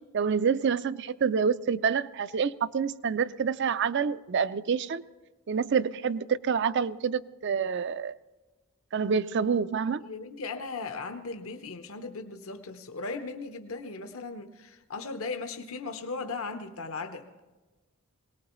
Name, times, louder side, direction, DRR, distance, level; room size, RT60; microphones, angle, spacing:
voice 1, 0.1-5.0 5.5-8.2 8.9-10.0, right 6 dB, 50° right, 0.4 m, -27 dB
voice 2, 10.0-17.3, left 4 dB, 70° left, 0.9 m, -37 dB
22.5 x 18.5 x 3.1 m
head